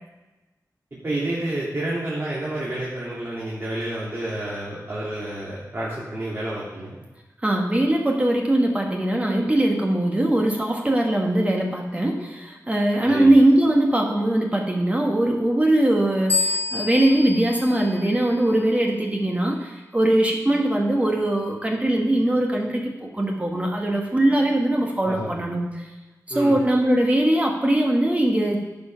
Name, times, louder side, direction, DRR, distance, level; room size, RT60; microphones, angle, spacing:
voice 1, 0.9-7.0 13.1-13.3 25.0-25.3 26.3-26.6, right 1 dB, 35° right, -7 dB, 2.2 m, -29 dB
voice 2, 7.4-25.9 26.3-28.8, right 1 dB, 20° right, 0 dB, 1.3 m, -21 dB
sound 1, 16.3-18.8, left 3 dB, 30° left, 0.4 m, -28 dB
10.5 x 5.2 x 5.7 m, 1.1 s
wide cardioid pair, 95°, 7 cm